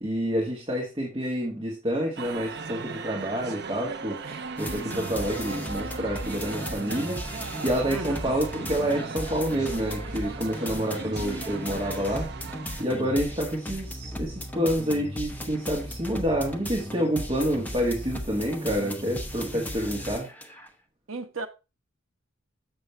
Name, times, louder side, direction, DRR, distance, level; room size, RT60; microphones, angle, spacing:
voice 1, 0.0-7.2 7.6-12.3 12.8-20.3, equal, 25° right, 1.7 m, -28 dB
sound 1, 2.2-12.8, right 4 dB, 55° right, 0.6 m, -38 dB
sound 2, 4.6-20.7, equal, 10° left, 0.8 m, -36 dB
voice 2, 7.9-8.3 21.1-21.5, right 3 dB, 85° right, 0.8 m, -35 dB
7.0 x 6.7 x 3.3 m
head